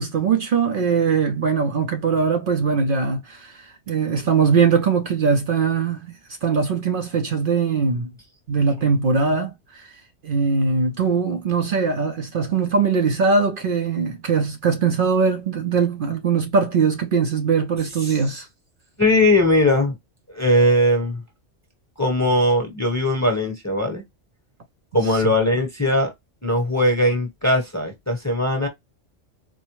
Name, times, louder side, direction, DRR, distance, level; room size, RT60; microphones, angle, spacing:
voice 1, 0.0-3.6 3.9-6.1 6.4-8.1 8.5-9.9 10.2-18.5 25.1-25.2, right 5 dB, 55° right, 0.7 m, -21 dB
voice 2, 19.0-20.0 20.3-21.2 22.0-24.0 24.9-26.1 26.4-28.7, left 1 dB, 15° left, 0.9 m, -19 dB
4.4 x 2.1 x 3.0 m
omnidirectional pair, 1.3 m